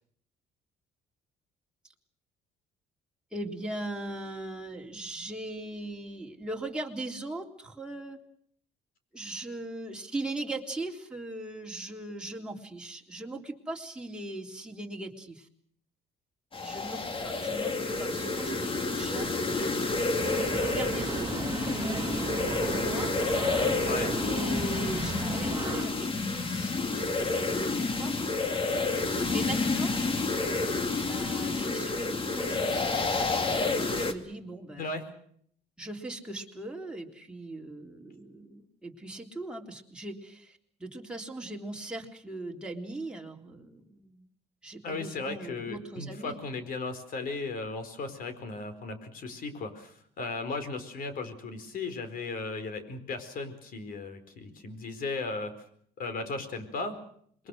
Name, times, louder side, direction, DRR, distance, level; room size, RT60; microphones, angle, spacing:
voice 1, 3.3-8.2 9.1-15.5 16.6-19.4 20.3-23.1 24.2-28.6 29.3-30.0 31.1-33.1 33.9-34.9 35.8-44.2 44.6-46.4, right 2 dB, 5° right, 0 dB, 3.6 m, -39 dB
sound 1, 16.5-34.1, left 3 dB, 30° left, 2.4 m, -29 dB
sound 2, 20.2-25.9, right 4 dB, 25° right, 2.1 m, -35 dB
voice 2, 44.8-55.5 56.0-57.0, left 3 dB, 55° left, 10 dB, 4.6 m, -36 dB
27.0 x 22.0 x 6.4 m, 0.64 s
cardioid pair, 110°, 17 cm